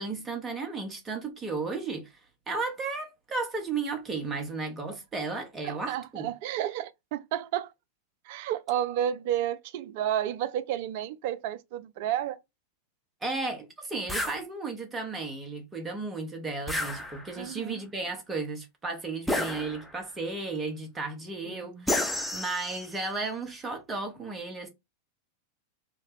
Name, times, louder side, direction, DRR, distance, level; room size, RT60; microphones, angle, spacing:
voice 1, 0.0-2.2 2.5-6.3 13.2-24.7, right 3 dB, 20° right, 1.0 m, -34 dB
voice 2, 5.6-7.7 8.3-12.4 17.4-17.8 21.5-21.8, right 11 dB, 50° right, 0.4 m, -31 dB
sound 1, 14.1-14.4 16.7-17.5 19.3-20.1 21.9-23.0, left 1 dB, ahead, 0.6 m, -31 dB
3.4 x 2.1 x 3.3 m
figure-of-eight pair, 90°, 0 cm